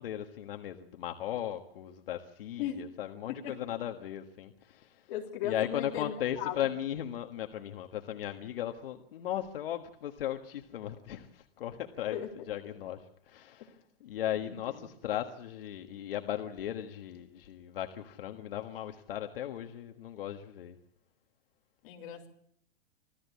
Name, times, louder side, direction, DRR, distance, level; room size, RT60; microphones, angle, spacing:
voice 1, 0.0-5.1 5.4-12.2 12.5-20.8, left 11 dB, 60° left, 5 dB, 1.6 m, -37 dB
voice 2, 5.1-6.7 12.1-12.5 14.5-14.9 21.8-22.3, left 10 dB, 35° left, 0 dB, 3.4 m, -37 dB
26.0 x 15.5 x 8.3 m, 0.70 s
supercardioid pair, 175°, 31 cm